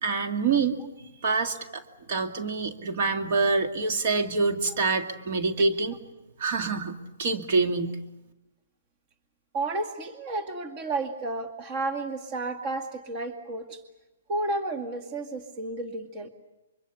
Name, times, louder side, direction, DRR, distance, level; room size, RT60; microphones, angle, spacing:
voice 1, 0.0-0.8 1.2-1.8 2.1-6.0 6.4-8.0, right 4 dB, 50° right, 4 dB, 2.2 m, -26 dB
voice 2, 9.5-13.8 14.3-16.3, right 2 dB, 35° right, 8 dB, 2.2 m, -32 dB
25.5 x 24.0 x 7.0 m, 1.0 s
hypercardioid pair, 150°, 0 cm